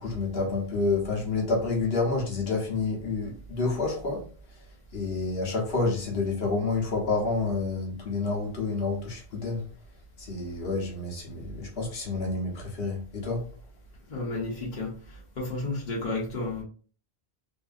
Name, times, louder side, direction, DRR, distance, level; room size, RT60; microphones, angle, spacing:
voice 1, 0.0-4.2 4.9-9.6 10.2-13.4, left 3 dB, 70° left, 1.1 m, -29 dB
voice 2, 14.1-16.6, left 2 dB, 50° left, 0.9 m, -32 dB
2.6 x 2.6 x 2.4 m
omnidirectional pair, 1.1 m